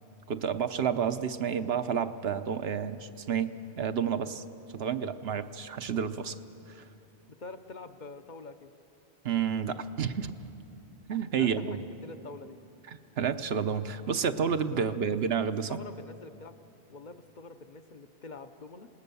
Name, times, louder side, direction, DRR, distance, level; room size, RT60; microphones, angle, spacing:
voice 1, 0.3-4.4 4.7-6.4 6.7-6.8 9.2-10.3 11.1-11.8 13.2-15.8, right 7 dB, 75° right, 10 dB, 1.0 m, -30 dB
voice 2, 7.3-8.7 11.3-12.6 14.8-15.0 15.7-16.5 16.9-18.9, left 3 dB, 50° left, 8 dB, 0.9 m, -46 dB
27.0 x 19.0 x 6.9 m, 2.7 s
omnidirectional pair, 1.1 m